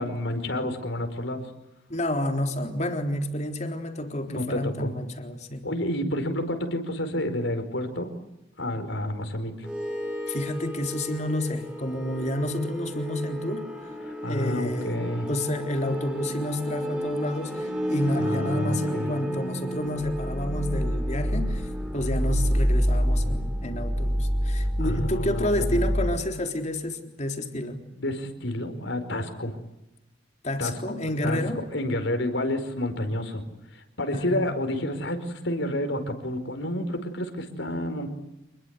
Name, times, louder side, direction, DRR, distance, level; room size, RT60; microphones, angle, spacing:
voice 1, 0.0-1.4 4.3-4.9 5.6-8.1 8.6-9.7 14.1-15.3 18.1-19.1 24.8-25.8 28.0-29.6 30.6-30.7 31.2-31.4 31.7-33.4 33.7-38.1, left 1 dB, 70° left, 7 dB, 5.0 m, -29 dB
voice 2, 1.9-5.7 10.3-13.9 14.3-15.0 15.3-27.8 30.4-31.6 34.1-34.5, left 1 dB, 35° left, 4 dB, 3.8 m, -30 dB
sound 1, 9.6-26.2, equal, 5° right, 6.8 m, -29 dB
28.0 x 21.5 x 8.2 m, 0.91 s
head